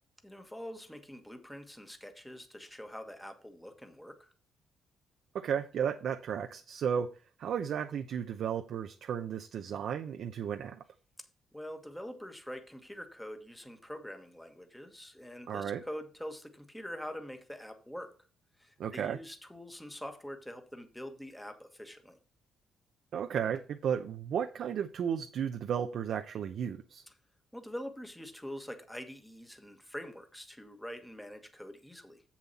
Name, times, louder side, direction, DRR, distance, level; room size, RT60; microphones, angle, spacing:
voice 1, 0.2-4.3 11.5-18.1 18.6-22.2 27.5-32.2, equal, 5° left, 6 dB, 1.4 m, -45 dB
voice 2, 5.3-7.1 7.4-10.8 15.5-15.8 18.8-19.2 23.1-27.0, right 8 dB, 65° right, 6 dB, 0.7 m, -34 dB
7.5 x 7.2 x 4.2 m, 0.37 s
cardioid pair, 90°, 0 cm